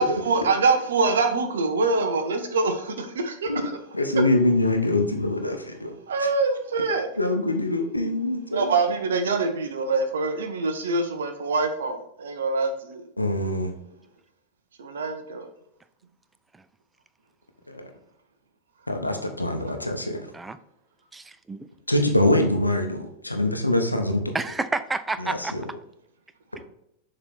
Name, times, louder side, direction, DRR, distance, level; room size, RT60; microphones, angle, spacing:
voice 1, 0.0-3.7 6.1-7.1 8.5-13.0 14.8-15.5, right 3 dB, 65° right, 6 dB, 0.8 m, -24 dB
voice 2, 3.9-5.9 6.2-6.3 7.2-8.8 13.2-13.7 17.7-17.9 18.9-20.2 21.9-24.3 25.2-25.6, left 1 dB, 85° left, 5 dB, 0.7 m, -24 dB
voice 3, 21.1-21.7 24.3-25.5, right 3 dB, 10° right, 12 dB, 0.4 m, -30 dB
6.9 x 3.3 x 4.3 m, 0.76 s
figure-of-eight pair, 90°, 0 cm